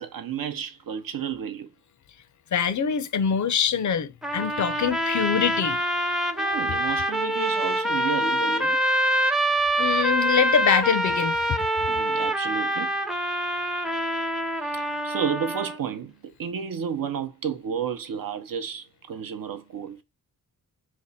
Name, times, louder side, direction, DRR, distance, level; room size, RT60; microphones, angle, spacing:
voice 1, 0.0-1.7 6.4-8.8 10.1-10.6 11.9-12.9 14.7-20.0, right 7 dB, 65° right, 0.6 m, -32 dB
voice 2, 2.5-5.8 9.8-11.4, left 7 dB, 50° left, 0.5 m, -24 dB
sound 1, 4.2-15.8, right 1 dB, ahead, 0.5 m, -25 dB
3.4 x 2.1 x 3.9 m
wide cardioid pair, 90°, 37 cm